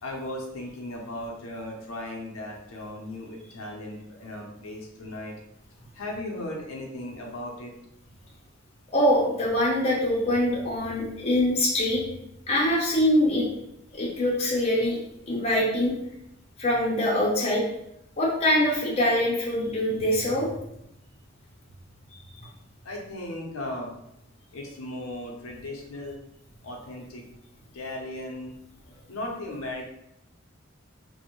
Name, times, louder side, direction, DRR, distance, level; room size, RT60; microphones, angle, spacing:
voice 1, 0.0-5.3 5.9-7.7 22.8-23.9 24.5-26.2 26.6-27.2 27.7-28.5 29.1-29.9, left 1 dB, 80° left, 0 dB, 0.5 m, -36 dB
voice 2, 8.9-12.0 12.5-13.5 13.9-15.0 15.3-15.9 16.6-17.6 18.2-20.5, left 1 dB, 30° left, -4 dB, 0.5 m, -23 dB
2.5 x 2.0 x 2.9 m, 0.81 s
head